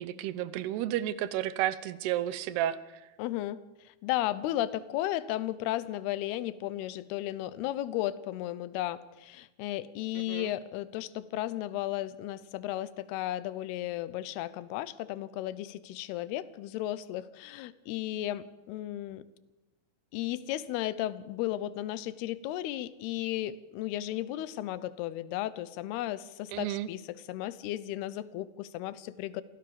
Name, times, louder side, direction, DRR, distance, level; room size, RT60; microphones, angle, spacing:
voice 1, 0.0-2.8 10.3-10.5 26.5-26.9, right 12 dB, 85° right, 16 dB, 2.9 m, -32 dB
voice 2, 3.2-3.6 3.8-19.2 20.1-29.4, left 14 dB, 85° left, 17 dB, 2.8 m, -34 dB
24.0 x 16.0 x 7.0 m, 1.0 s
omnidirectional pair, 4.5 m